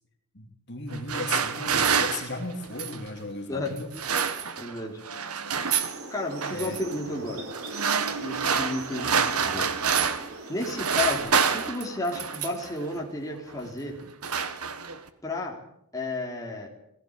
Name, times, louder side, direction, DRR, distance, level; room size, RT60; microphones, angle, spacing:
voice 1, 0.3-3.9 6.5-6.8, left 2 dB, 50° left, 3 dB, 2.9 m, -36 dB
sound 1, 0.9-3.1 3.8-4.8 5.0-6.0 6.4-6.8 7.5-10.3 10.6-12.7 13.5-13.7 14.0-15.1, right 6 dB, 85° right, 1.5 m, -27 dB
voice 2, 4.6-5.0 6.1-7.5 8.2-9.7 10.5-14.0 15.2-15.6 15.9-16.7, left 2 dB, 15° left, -1 dB, 3.4 m, -32 dB
sound 2, 5.7-11.2, right 3 dB, 70° right, 4.6 m, -40 dB
18.5 x 16.5 x 8.8 m, 0.76 s
head